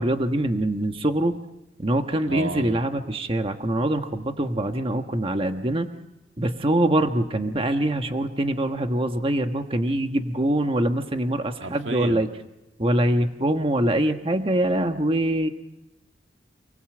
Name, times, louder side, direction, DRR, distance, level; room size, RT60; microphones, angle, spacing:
voice 1, 0.0-1.4 1.8-5.9 6.4-12.3 12.8-15.5, right 1 dB, 30° right, 6 dB, 1.3 m, -24 dB
voice 2, 2.3-2.8 11.6-12.2, right 2 dB, 85° right, 5 dB, 2.2 m, -31 dB
29.5 x 20.0 x 7.7 m, 0.96 s
head